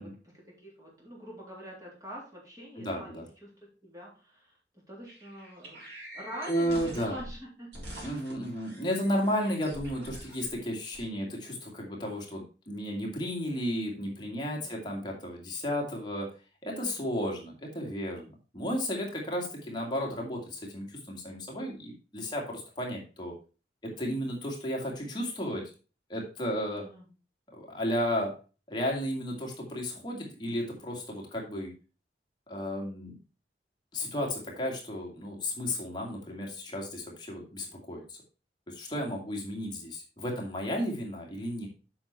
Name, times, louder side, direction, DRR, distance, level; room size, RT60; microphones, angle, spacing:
voice 1, 0.0-3.5 3.8-5.9 6.1-7.7 14.6-14.7 26.8-27.1, equal, 20° right, -3 dB, 3.5 m, -45 dB
voice 2, 2.8-3.2 6.5-7.2 8.0-16.3 16.6-23.3 23.8-25.7 26.1-26.8 27.5-28.3 28.7-31.7 32.5-33.1 33.9-38.2 38.7-41.7, equal, 25° left, -1 dB, 2.1 m, -33 dB
sound 1, 5.1-7.4 7.7-10.5 10.9-11.0, equal, 75° right, 4.2 m, -45 dB
7.8 x 5.8 x 4.2 m, 0.34 s
head